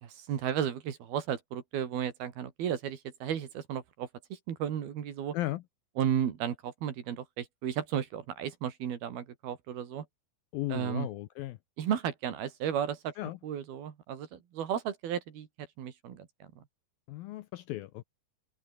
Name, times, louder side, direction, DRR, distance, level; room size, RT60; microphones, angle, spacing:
voice 1, 0.0-5.4 6.0-10.1 10.7-11.1 11.8-13.1 13.4-15.5 15.8-16.6, right 9 dB, 65° right, 4.1 m, -34 dB
voice 2, 10.5-11.6 13.2-13.4 17.1-18.0, left 16 dB, 75° left, 2.2 m, -36 dB
omnidirectional pair, 4.9 m